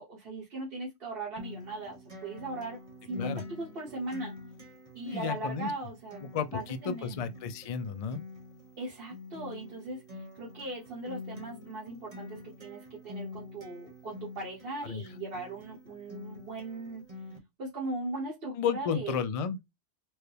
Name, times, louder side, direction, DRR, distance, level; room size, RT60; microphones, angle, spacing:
voice 1, 0.0-4.3 4.9-7.2 8.8-17.0 17.6-19.2, right 2 dB, 60° right, 1.3 m, -39 dB
Acoustic guitar, 1.4-17.4, left 3 dB, 35° right, 1.1 m, -46 dB
voice 2, 5.1-5.7 6.2-8.2 14.9-15.0 18.6-19.6, left 7 dB, 50° left, 0.4 m, -32 dB
4.5 x 2.2 x 3.3 m
omnidirectional pair, 1.1 m